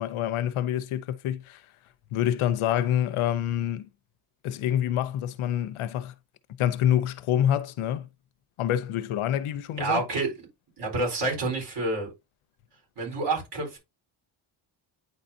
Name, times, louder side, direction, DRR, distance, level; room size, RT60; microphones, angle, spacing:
voice 1, 0.0-1.6 2.1-3.9 4.4-6.1 6.6-8.1 8.6-10.0, left 11 dB, 80° left, 0.8 m, -26 dB
voice 2, 9.8-10.3 10.8-12.1 13.0-13.8, right 3 dB, 55° right, 4.2 m, -28 dB
9.4 x 4.0 x 2.7 m
cardioid pair, 95°, 49 cm